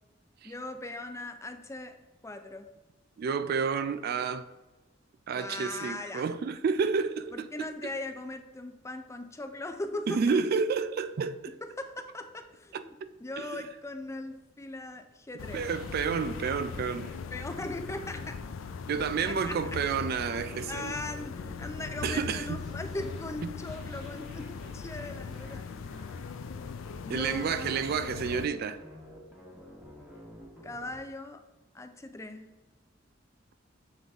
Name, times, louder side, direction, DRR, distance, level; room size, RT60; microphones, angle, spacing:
voice 1, 0.4-2.0 2.2-2.7 5.3-6.2 7.3-10.4 11.6-15.7 17.3-18.4 19.3-19.8 20.7-25.6 27.0-27.9 30.6-31.4 31.7-32.6, left 2 dB, 15° left, 0.4 m, -39 dB
voice 2, 3.2-4.5 5.3-7.7 10.1-11.5 12.7-12.8 13.4-13.6 15.5-17.1 18.9-20.9 22.0-22.6 27.1-28.8, right 5 dB, 50° right, 0.3 m, -30 dB
sound 1, 15.4-28.5, left 5 dB, 80° left, 0.4 m, -40 dB
sound 2, 15.6-31.0, equal, ahead, 1.3 m, -51 dB
7.0 x 3.9 x 3.5 m
head